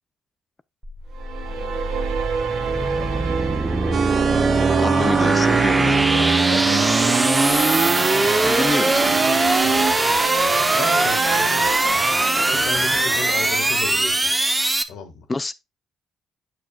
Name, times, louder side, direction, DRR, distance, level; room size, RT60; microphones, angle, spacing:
sound 1, 0.8-14.8, right 2 dB, 15° right, 0.9 m, -21 dB
sound 2, 1.1-13.5, right 7 dB, 80° right, 1.4 m, -28 dB
voice 1, 1.4-1.8 2.6-3.9 6.1-7.5 9.6-9.8 10.7-11.6 12.5-14.3 14.9-15.3, left 5 dB, 85° left, 2.0 m, -35 dB
sound 3, 3.9-9.9, right 6 dB, 45° right, 0.7 m, -23 dB
voice 2, 4.8-6.0 8.4-9.2 15.3-15.5, left 3 dB, 20° left, 0.4 m, -26 dB
8.5 x 6.2 x 2.4 m
cardioid pair, 90°, 0 cm